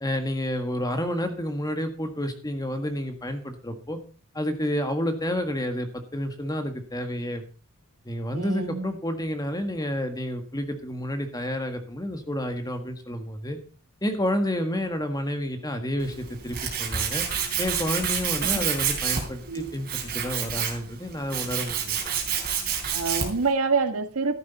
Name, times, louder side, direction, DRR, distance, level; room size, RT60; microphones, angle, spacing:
voice 1, 0.0-4.0 4.3-7.4 8.0-13.6 14.0-17.2 17.6-22.0, left 1 dB, 15° left, 7 dB, 1.6 m, -30 dB
voice 2, 8.3-8.9 18.5-18.6 19.5-19.7 22.9-24.4, right 4 dB, 80° right, 8 dB, 1.5 m, -26 dB
Tools, 16.0-23.5, right 7 dB, 45° right, 3.5 m, -29 dB
13.5 x 11.0 x 4.1 m, 0.37 s
head